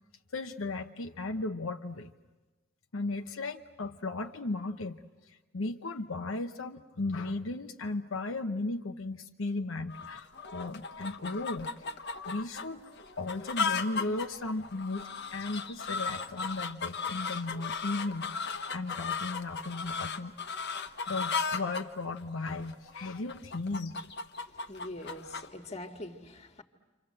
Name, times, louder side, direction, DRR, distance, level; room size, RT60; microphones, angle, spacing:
voice 1, 0.3-2.1 2.9-5.0 5.5-11.7 12.3-12.8 13.2-20.3 20.7-24.0, left 2 dB, 75° left, 4 dB, 0.9 m, -36 dB
sound 1, 9.9-25.5, left 5 dB, 55° left, 1.3 m, -36 dB
voice 2, 24.4-26.6, left 1 dB, 30° left, 4 dB, 1.8 m, -43 dB
29.5 x 26.0 x 7.7 m, 1.2 s
head